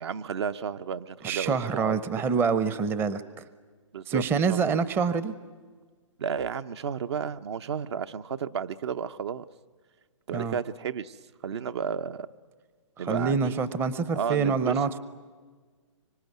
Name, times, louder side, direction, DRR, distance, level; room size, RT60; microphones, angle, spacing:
voice 1, 0.0-2.0 3.9-4.2 4.5-4.8 6.2-9.4 10.3-11.2 11.4-12.3 13.0-13.6 14.1-14.7, right 7 dB, 55° right, 12 dB, 0.9 m, -32 dB
voice 2, 1.2-3.2 4.1-5.3 10.3-10.6 13.0-15.0, right 5 dB, 15° right, 15 dB, 0.7 m, -26 dB
25.0 x 24.5 x 9.4 m, 1.5 s
hypercardioid pair, 140°, 17 cm